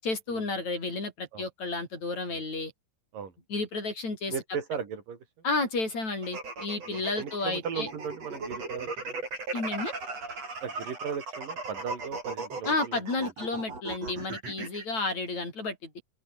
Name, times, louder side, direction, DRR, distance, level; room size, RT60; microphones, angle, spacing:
voice 1, 0.0-2.7 3.5-4.3 5.4-7.9 9.5-9.9 12.7-15.9, left 3 dB, 55° left, 9.4 m, -31 dB
voice 2, 4.3-5.2 6.9-9.2 10.6-13.0, right 7 dB, 80° right, 5.1 m, -37 dB
sound 1, 6.2-14.8, right 3 dB, 50° right, 7.8 m, -37 dB
open air
omnidirectional pair, 3.8 m